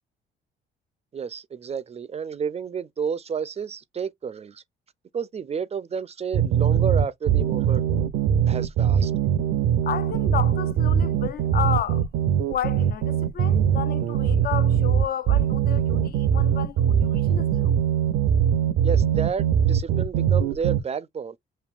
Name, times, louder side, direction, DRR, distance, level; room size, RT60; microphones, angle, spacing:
voice 1, 1.1-4.6 5.1-7.8 8.5-9.1 18.8-21.4, right 6 dB, 30° right, 0.4 m, -31 dB
sound 1, 6.3-20.8, right 9 dB, 85° right, 0.5 m, -21 dB
voice 2, 9.9-12.0 12.5-17.8, left 10 dB, 50° left, 0.4 m, -32 dB
5.2 x 2.7 x 2.3 m
cardioid pair, 90°, 20 cm